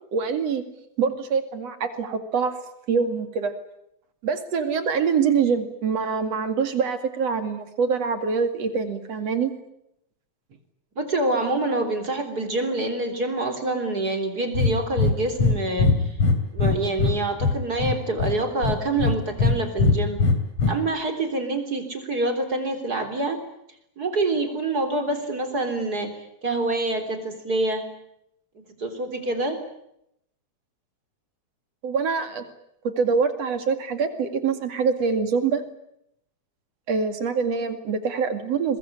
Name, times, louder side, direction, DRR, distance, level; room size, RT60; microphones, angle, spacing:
voice 1, 0.1-0.6 1.0-2.5 2.9-3.5 4.2-9.5 31.8-32.4 32.9-35.6 36.9-38.8, right 5 dB, 60° right, 8 dB, 3.3 m, -24 dB
voice 2, 11.0-16.1 16.5-20.2 20.7-23.4 24.0-27.9 28.8-29.6, right 2 dB, 30° right, 7 dB, 4.0 m, -26 dB
Breathing, 14.5-14.7 15.0-15.1 15.4-15.5 15.8-17.2 17.4-18.3 18.6-19.5 19.8-20.7, left 4 dB, 60° left, 3.9 m, -20 dB
23.0 x 21.0 x 10.0 m, 0.77 s
omnidirectional pair, 3.3 m